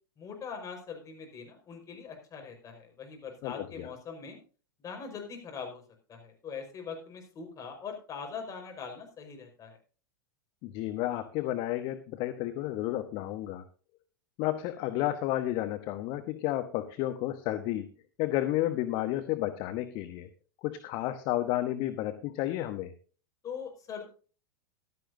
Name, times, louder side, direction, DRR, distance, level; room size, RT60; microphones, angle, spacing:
voice 1, 0.2-4.4 4.8-5.8 6.1-9.8 23.4-24.0, left 6 dB, 30° left, 3 dB, 5.0 m, -42 dB
voice 2, 3.4-3.9 10.6-13.6 14.4-17.9 18.2-20.3 20.6-22.9, left 14 dB, 45° left, 9 dB, 1.1 m, -31 dB
15.0 x 12.5 x 2.7 m, 0.38 s
hypercardioid pair, 100°, 12 cm